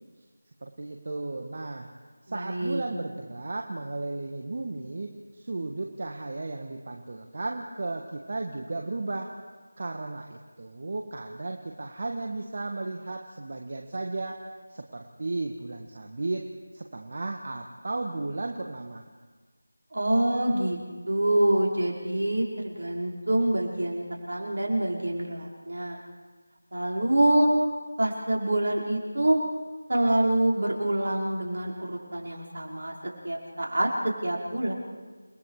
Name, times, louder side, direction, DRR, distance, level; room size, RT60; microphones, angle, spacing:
voice 1, 0.6-1.9 2.3-9.3 9.8-14.4 14.7-16.4 16.7-19.0, right 2 dB, 50° right, 3 dB, 1.7 m, -34 dB
voice 2, 2.3-2.9 19.9-20.8 21.1-26.0 26.7-27.5 28.0-29.4 29.9-32.9 33.2-34.7, right 1 dB, 65° right, -2 dB, 5.2 m, -26 dB
29.5 x 20.5 x 5.0 m, 1.4 s
figure-of-eight pair, 170°, 0 cm